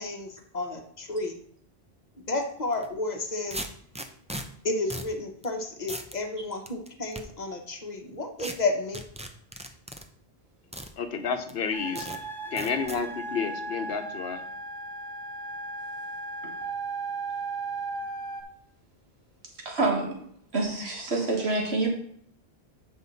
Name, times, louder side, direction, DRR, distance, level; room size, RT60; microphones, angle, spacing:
voice 1, 0.0-1.4 2.3-3.6 4.6-9.0, left 2 dB, 45° left, 4 dB, 1.2 m, -31 dB
sound 1, 2.7-2.9 3.5-4.4 4.9-5.1 5.4-5.5 5.9-6.2 6.7-7.2 8.4-8.5 8.9-10.0 10.7-10.9 11.5-11.6 12.0-12.2 12.6-13.0, right 1 dB, 10° right, 0.5 m, -37 dB
voice 2, 11.0-12.2 12.5-14.4, left 6 dB, 75° left, 8 dB, 1.1 m, -30 dB
sound 2, 11.7-18.4, right 3 dB, 25° right, 1.0 m, -36 dB
voice 3, 19.7-20.2 20.5-21.9, right 3 dB, 85° right, 0 dB, 2.0 m, -27 dB
8.1 x 5.6 x 4.0 m, 0.65 s
omnidirectional pair, 1.1 m